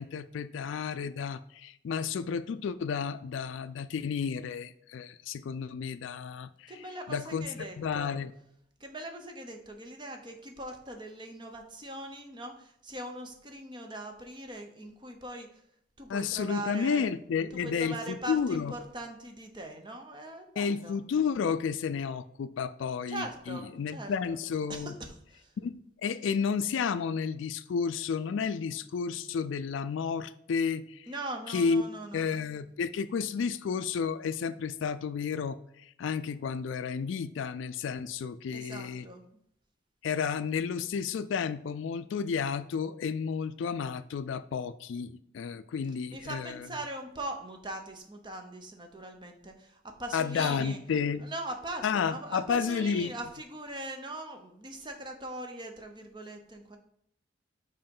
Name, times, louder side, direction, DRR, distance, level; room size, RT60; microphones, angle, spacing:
voice 1, 0.0-8.3 16.1-18.7 20.6-24.9 25.6-31.1 31.5-31.8 32.1-39.1 40.0-46.7 50.1-51.3 51.8-53.1, left 6 dB, 75° left, 11 dB, 0.3 m, -32 dB
voice 2, 6.7-8.2 8.8-15.6 16.0-17.0 17.5-21.0 23.1-24.4 24.7-25.5 31.1-32.3 38.5-39.2 46.1-50.8 51.2-56.8, right 1 dB, 25° right, 4 dB, 0.8 m, -41 dB
5.5 x 4.9 x 5.4 m, 0.72 s
head